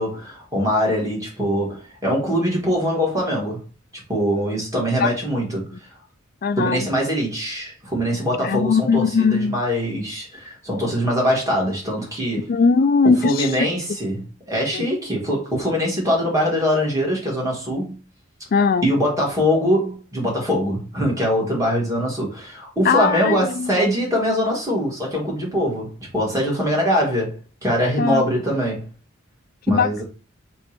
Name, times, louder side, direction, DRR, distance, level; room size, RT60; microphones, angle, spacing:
voice 1, 0.0-3.6 4.1-5.9 6.6-12.5 13.2-18.0 18.8-27.4 27.6-28.8 29.7-30.0, equal, 15° right, 1.7 m, -22 dB
voice 2, 6.4-6.9 8.4-9.6 12.5-13.7 14.7-14.9 18.5-18.9 22.8-23.8 28.0-28.2 29.7-30.0, left 5 dB, 45° left, 0.3 m, -19 dB
3.4 x 3.1 x 4.4 m
head